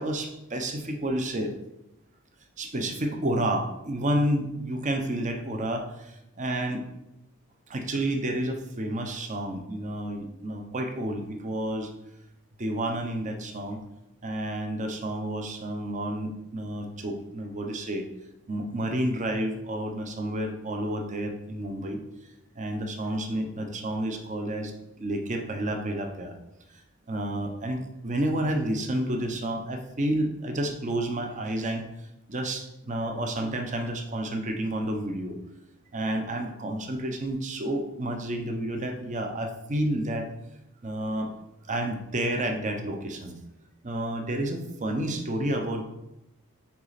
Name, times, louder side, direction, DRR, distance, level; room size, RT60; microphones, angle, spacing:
voice 1, 0.0-1.5 2.6-6.8 7.7-11.9 12.6-13.8 14.2-18.0 18.5-22.0 22.6-24.7 25.0-26.4 27.1-31.9 32.3-35.4 35.9-40.3 40.8-41.3 41.7-43.4 43.8-45.8, right 1 dB, 35° right, 5 dB, 0.7 m, -30 dB
6.0 x 4.1 x 4.1 m, 0.89 s
head